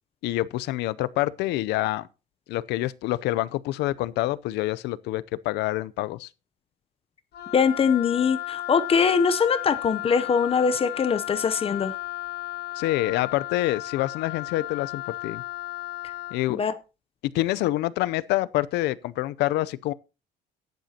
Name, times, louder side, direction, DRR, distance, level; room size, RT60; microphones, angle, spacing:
voice 1, 0.2-2.1 2.5-6.3 12.8-15.4 16.3-16.6 17.3-19.9, left 16 dB, 85° left, 0.6 m, -26 dB
Wind instrument woodwind instrument, 7.3-16.4, left 16 dB, 70° left, 2.1 m, -34 dB
voice 2, 7.5-11.9 16.5-16.8, left 6 dB, 35° left, 0.7 m, -22 dB
14.0 x 10.5 x 2.8 m
cardioid pair, 110°, 17 cm